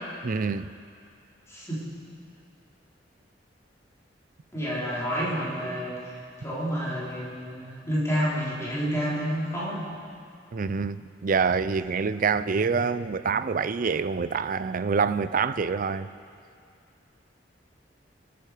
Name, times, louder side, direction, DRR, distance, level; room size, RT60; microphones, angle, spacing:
voice 1, 0.2-0.7 10.5-16.1, right 5 dB, 50° right, 0.5 m, -26 dB
voice 2, 1.5-1.8 4.5-6.0 6.4-9.9, equal, 15° left, 4.2 m, -29 dB
25.0 x 10.0 x 5.0 m
head